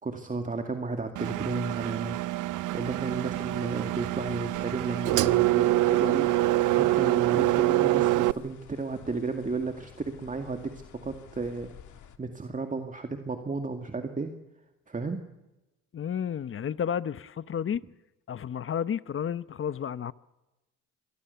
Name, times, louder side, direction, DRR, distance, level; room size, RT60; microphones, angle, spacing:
voice 1, 0.0-2.2 2.7-6.3 6.7-11.7 12.2-14.3 14.9-15.2, right 3 dB, 25° right, 2.1 m, -33 dB
Engine, 1.2-8.3, right 17 dB, 85° right, 0.7 m, -25 dB
sound 1, 2.7-12.2, left 9 dB, 75° left, 2.0 m, -52 dB
voice 2, 15.9-17.8 18.3-20.1, left 8 dB, 45° left, 0.9 m, -31 dB
26.0 x 20.5 x 7.0 m
cardioid pair, 90°, 30 cm